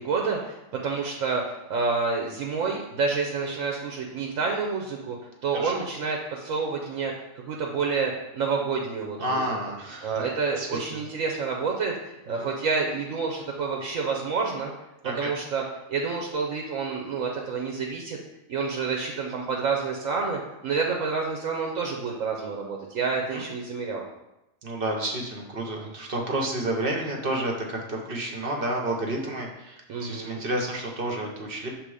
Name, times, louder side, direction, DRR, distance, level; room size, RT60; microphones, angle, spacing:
voice 1, 0.0-5.2 5.4-7.1 7.5-9.4 10.0-14.7 15.0-15.6 15.9-18.2 18.5-24.0 29.9-30.4, right 4 dB, 80° right, 0 dB, 1.1 m, -28 dB
voice 2, 9.2-10.2 10.6-11.0 12.3-12.5 15.0-15.3 23.3-23.4 24.6-31.7, right 1 dB, 45° right, 0 dB, 1.1 m, -30 dB
6.8 x 3.3 x 4.8 m, 0.93 s
omnidirectional pair, 1.4 m